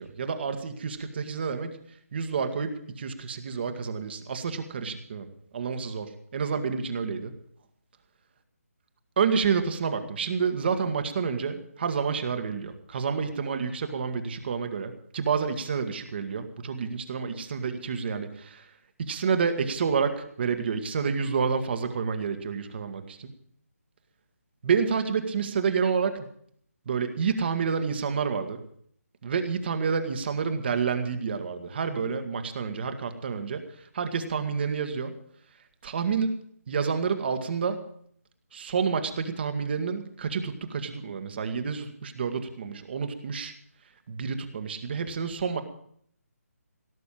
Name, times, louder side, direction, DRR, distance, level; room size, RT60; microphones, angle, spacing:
voice 1, 0.0-1.8 2.1-5.3 5.5-7.3 9.2-18.7 19.0-23.3 24.6-26.3 26.9-28.6 29.2-35.1 35.8-36.3 36.7-37.8 38.5-43.5 44.1-45.6, right 6 dB, 40° right, 7 dB, 1.8 m, -29 dB
17.5 x 6.9 x 8.8 m, 0.62 s
figure-of-eight pair, 150°, 8 cm